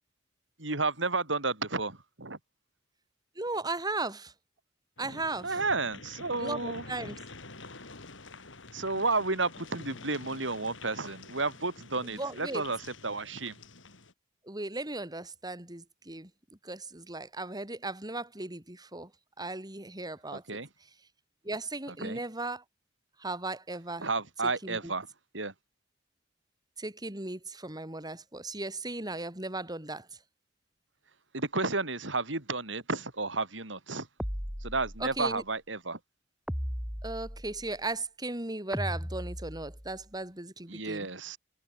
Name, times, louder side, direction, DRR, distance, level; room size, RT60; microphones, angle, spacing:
voice 1, 0.6-2.4 5.4-6.8 8.7-13.6 20.3-20.7 21.9-22.2 24.0-25.1 25.3-25.5 31.3-34.1 34.6-36.0 40.7-41.4, right 3 dB, 75° right, 5.1 m, -32 dB
voice 2, 3.4-4.3 5.0-5.6 6.4-7.2 12.1-12.6 14.4-16.3 16.6-19.1 19.4-20.4 21.4-22.6 23.2-24.1 24.6-24.8 26.8-30.1 35.0-35.4 37.0-41.1, right 2 dB, 20° right, 4.2 m, -36 dB
sound 1, 5.0-14.1, left 3 dB, 85° left, 5.2 m, -48 dB
sound 2, 34.2-35.3 36.5-37.7 38.7-40.0, equal, 5° right, 2.8 m, -37 dB
head